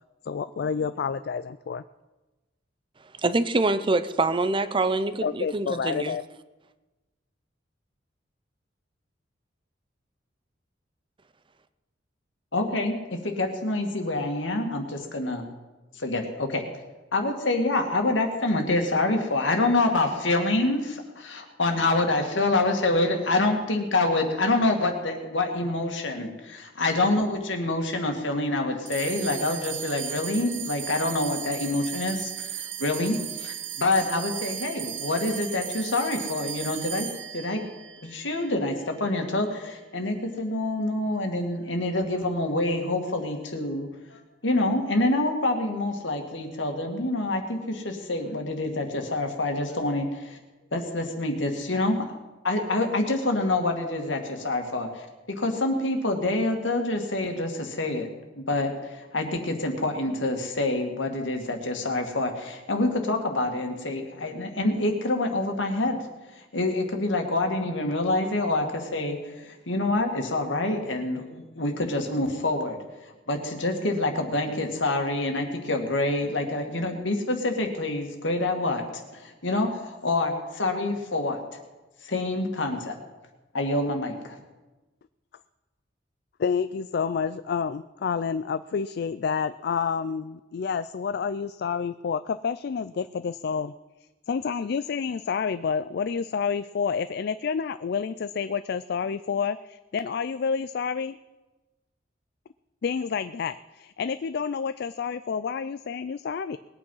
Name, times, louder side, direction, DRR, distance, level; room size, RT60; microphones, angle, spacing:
voice 1, 0.2-1.8 5.2-6.2 86.4-93.7 94.3-101.2 102.8-106.6, left 6 dB, 60° left, 0.3 m, -29 dB
voice 2, 3.2-6.2, right 2 dB, 25° right, 0.6 m, -25 dB
voice 3, 12.5-15.5 16.0-16.6 17.1-37.1 37.3-37.6 38.0-50.4 50.7-52.1 52.4-58.1 58.3-66.0 66.5-72.8 73.3-78.8 79.1-81.4 82.0-83.0 83.5-84.4, left 2 dB, 85° left, 2.1 m, -26 dB
sound 1, 28.9-39.5, right 10 dB, 85° right, 0.9 m, -36 dB
20.5 x 8.7 x 5.6 m
head